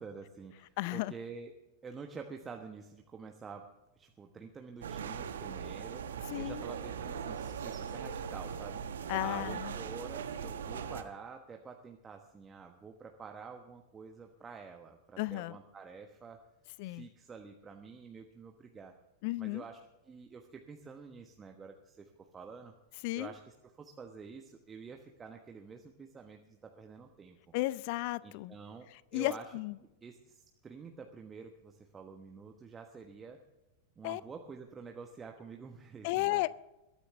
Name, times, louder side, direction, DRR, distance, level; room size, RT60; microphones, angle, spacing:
voice 1, 0.0-1.5 1.8-8.8 9.2-16.4 16.8-18.9 19.4-19.8 20.0-22.7 23.1-27.4 28.2-28.9 29.1-29.5 30.0-33.4 34.0-36.4, right 5 dB, 20° right, 3 dB, 1.2 m, -48 dB
voice 2, 0.8-1.1 6.3-6.6 9.1-9.7 15.2-15.6 16.8-17.1 19.2-19.6 23.0-23.3 27.5-28.6 29.1-29.8 34.0-34.2 36.0-36.5, left 19 dB, 45° left, 19 dB, 0.5 m, -34 dB
sound 1, 4.8-11.0, right 7 dB, 65° right, 1.1 m, -40 dB
21.5 x 13.5 x 3.3 m, 0.94 s
figure-of-eight pair, 90°, 0 cm